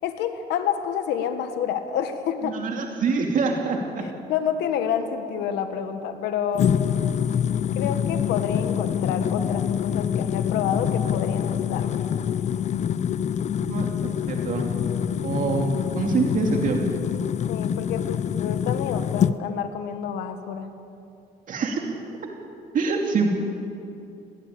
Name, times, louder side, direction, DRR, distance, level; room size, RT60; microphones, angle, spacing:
voice 1, 0.0-2.6 4.0-6.7 7.7-12.1 17.5-20.7, left 8 dB, 85° left, 8 dB, 1.7 m, -29 dB
voice 2, 2.4-4.0 13.6-13.9 14.1-14.7 15.2-16.8 21.5-21.9 22.7-23.3, right 4 dB, 50° right, 1 dB, 2.6 m, -25 dB
sound 1, 6.6-19.4, left 8 dB, 45° left, 0.6 m, -25 dB
20.5 x 17.5 x 8.7 m, 2.7 s
cardioid pair, 110°, 17 cm